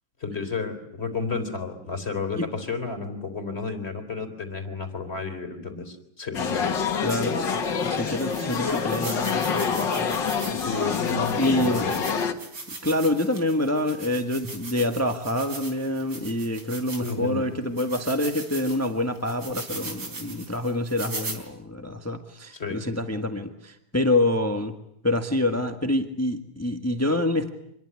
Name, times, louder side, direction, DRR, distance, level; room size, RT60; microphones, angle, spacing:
voice 1, 0.2-6.8 10.6-12.0 17.0-17.4 22.5-22.9, left 4 dB, 30° left, 7 dB, 4.0 m, -32 dB
sound 1, 6.3-12.3, left 6 dB, 65° left, 2.3 m, -26 dB
voice 2, 7.0-10.6 11.4-11.8 12.8-24.7 25.0-27.5, left 1 dB, 10° left, 6 dB, 1.5 m, -26 dB
sound 2, 7.1-7.2 7.7-7.8 8.2-17.3 17.8-21.4, right 3 dB, 90° right, 5.0 m, -39 dB
26.5 x 22.0 x 9.7 m, 0.77 s
omnidirectional pair, 2.1 m